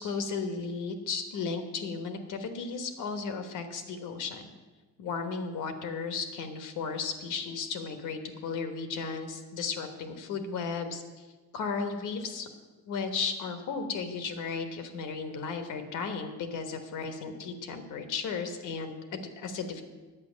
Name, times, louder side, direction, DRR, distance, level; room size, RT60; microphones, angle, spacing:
voice 1, 0.0-4.4 5.0-11.3 11.5-12.5 12.9-19.8, left 5 dB, 85° left, 7 dB, 1.3 m, -35 dB
9.6 x 8.1 x 6.3 m, 1.3 s
cardioid pair, 90°, 30 cm